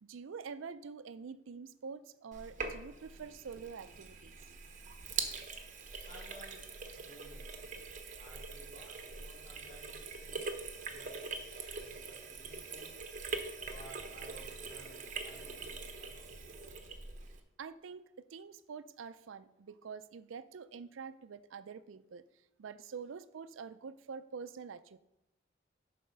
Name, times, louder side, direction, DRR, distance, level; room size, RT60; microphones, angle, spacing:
voice 1, 0.0-4.5 17.6-22.2 22.6-25.0, right 5 dB, 85° right, 14 dB, 0.4 m, -46 dB
Sink (filling or washing), 2.3-17.4, right 4 dB, 40° right, 0.9 m, -43 dB
voice 2, 6.1-7.8 8.2-10.5 10.8-13.1 13.7-16.4, equal, 40° left, -4 dB, 3.3 m, -56 dB
11.0 x 4.2 x 5.5 m, 0.91 s
head